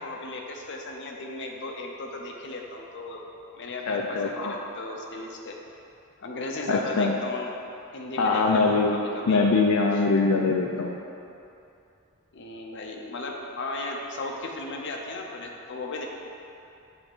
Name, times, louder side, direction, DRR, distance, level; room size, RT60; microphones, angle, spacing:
voice 1, 0.0-3.2 3.5-5.6 6.2-7.5 7.9-9.5 12.3-16.0, left 2 dB, 55° left, 0 dB, 0.8 m, -36 dB
voice 2, 3.9-4.6 6.7-7.1 8.2-10.9, left 3 dB, 80° left, 0 dB, 0.5 m, -23 dB
7.7 x 3.6 x 6.1 m, 2.7 s
head